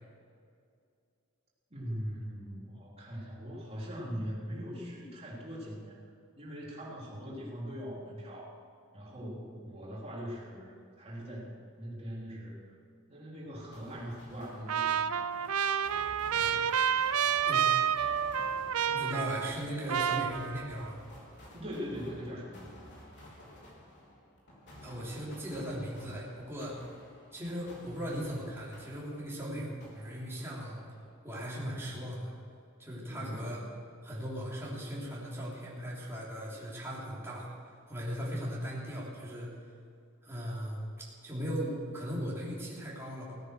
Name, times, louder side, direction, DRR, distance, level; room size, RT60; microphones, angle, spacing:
voice 1, 1.7-6.0 6.4-8.6 8.9-12.6 13.1-15.0 16.4-16.7 21.5-22.7 32.9-33.6, equal, 30° right, -5 dB, 3.9 m, -41 dB
sound 1, 13.7-29.5 29.8-31.2, left 1 dB, 55° left, 4.0 m, -53 dB
Trumpet, 14.7-19.6 19.9-20.9, right 8 dB, 85° right, 0.5 m, -29 dB
voice 2, 18.9-21.0 24.8-26.8 27.3-29.7 29.9-30.8 31.2-32.3 32.8-33.6 34.0-37.5 37.9-39.5 40.2-43.3, equal, 10° right, -6 dB, 3.3 m, -38 dB
17.0 x 9.7 x 6.4 m, 2.3 s
head